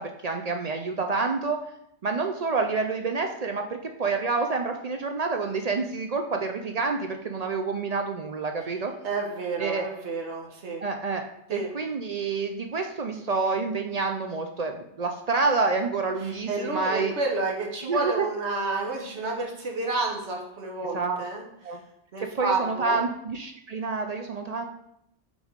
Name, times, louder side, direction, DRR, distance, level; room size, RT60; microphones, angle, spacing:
voice 1, 0.0-1.6 2.0-3.6 4.0-8.9 9.6-9.9 10.8-11.2 11.5-17.1 17.8-18.3 20.9-21.2 21.6-21.8 22.2-24.7, right 4 dB, 50° right, 5 dB, 0.4 m, -28 dB
voice 2, 9.0-10.8 11.5-11.7 16.2-21.8 22.1-23.0, right 3 dB, 80° right, 0 dB, 1.3 m, -30 dB
6.1 x 3.5 x 5.1 m, 0.76 s
omnidirectional pair, 1.2 m